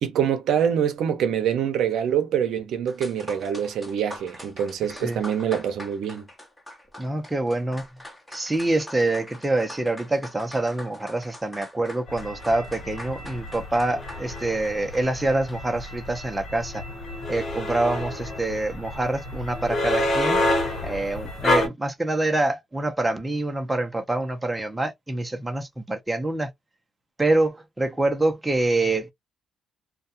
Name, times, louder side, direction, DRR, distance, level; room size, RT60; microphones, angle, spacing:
voice 1, 0.0-6.3, right 8 dB, 75° right, 0.6 m, -25 dB
sound 1, 2.9-15.8, left 1 dB, 15° left, 1.0 m, -43 dB
voice 2, 7.0-7.9 8.3-16.8 17.3-20.4 20.8-26.5 27.2-29.1, right 2 dB, 10° right, 0.7 m, -26 dB
sound 2, 12.1-21.7, left 1 dB, 60° left, 1.2 m, -29 dB
2.3 x 2.3 x 2.6 m
cardioid pair, 90°, 0 cm